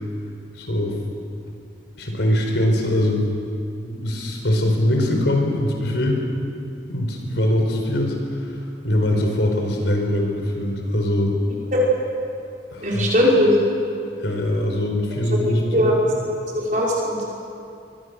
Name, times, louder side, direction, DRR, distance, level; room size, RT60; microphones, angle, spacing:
voice 1, 0.5-1.0 1.9-3.3 3.8-6.2 6.9-8.6 8.8-11.4 12.7-13.1 14.2-16.0, left 1 dB, 75° left, 2 dB, 4.5 m, -22 dB
voice 2, 12.8-13.6 15.7-15.9 16.5-17.2, left 1 dB, 45° right, -4 dB, 5.6 m, -19 dB
24.0 x 22.5 x 6.6 m, 2.5 s
head